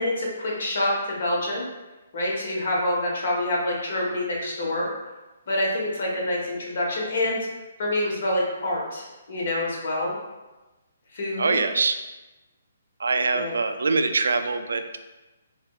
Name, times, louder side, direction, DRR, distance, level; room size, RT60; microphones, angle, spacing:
voice 1, 0.0-1.6 2.1-4.9 5.5-7.4 7.8-10.2 11.1-11.6 13.3-13.6, left 1 dB, 60° left, -3 dB, 1.1 m, -26 dB
voice 2, 11.4-11.9 13.0-15.0, right 4 dB, 80° right, 7 dB, 0.3 m, -23 dB
4.9 x 2.3 x 2.2 m, 1.1 s
hypercardioid pair, 150°, 0 cm